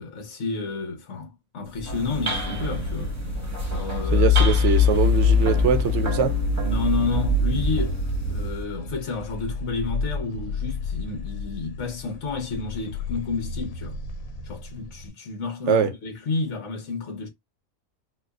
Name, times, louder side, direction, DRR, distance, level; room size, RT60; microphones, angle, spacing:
voice 1, 0.0-4.3 6.6-8.0 8.3-14.0 14.4-17.3, left 4 dB, 65° left, 1.3 m, -31 dB
sound 1, 1.6-8.6, right 1 dB, 15° right, 1.0 m, -29 dB
sound 2, 3.6-11.9 12.3-14.9, left 5 dB, 90° left, 1.1 m, -25 dB
voice 2, 4.1-6.3 15.7-15.9, right 7 dB, 70° right, 0.9 m, -22 dB
4.4 x 2.3 x 2.3 m
omnidirectional pair, 1.4 m